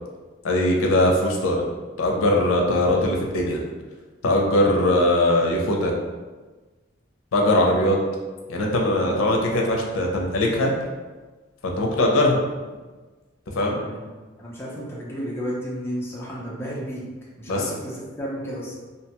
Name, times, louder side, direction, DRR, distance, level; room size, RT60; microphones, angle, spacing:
voice 1, 0.4-1.6 2.0-3.6 4.2-5.9 7.3-8.0 8.5-10.7 11.6-12.4 13.5-13.8 17.5-17.6, left 1 dB, 90° left, 0 dB, 0.5 m, -20 dB
voice 2, 13.7-14.0 14.4-17.1 17.4-18.7, equal, 10° left, -6 dB, 0.4 m, -32 dB
2.7 x 2.2 x 2.8 m, 1.3 s
head